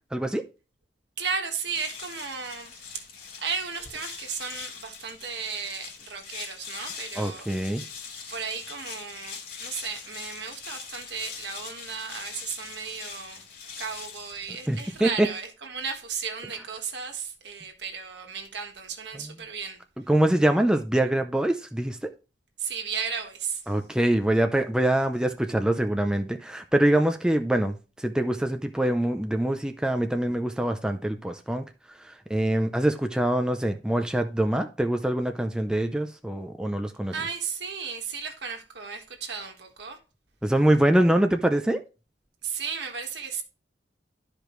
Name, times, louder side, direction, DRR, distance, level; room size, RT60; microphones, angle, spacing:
voice 1, 0.1-0.4 7.2-7.8 14.7-15.3 20.1-22.1 23.7-31.6 32.3-37.1 40.4-41.8, right 1 dB, 5° right, 0.5 m, -24 dB
voice 2, 1.2-2.8 3.4-7.8 8.3-13.4 13.8-19.8 22.6-23.6 37.1-40.0 42.4-43.4, right 6 dB, 65° right, 1.6 m, -34 dB
sound 1, 1.6-15.3, left 6 dB, 55° left, 2.4 m, -42 dB
12.5 x 5.1 x 3.1 m
head